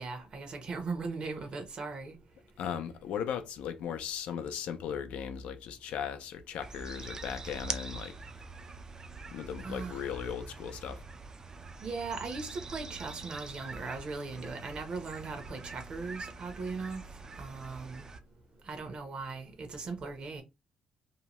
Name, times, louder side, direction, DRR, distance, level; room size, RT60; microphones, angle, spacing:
voice 1, 0.0-2.1 9.6-10.1 11.8-17.0 17.4-18.1 18.6-20.4, right 4 dB, 50° right, 0.8 m, -39 dB
voice 2, 2.6-8.1 9.3-11.0, left 8 dB, 85° left, 0.5 m, -37 dB
sound 1, 6.6-18.2, right 4 dB, 30° right, 0.4 m, -44 dB
2.7 x 2.2 x 2.9 m
cardioid pair, 110°, 2 cm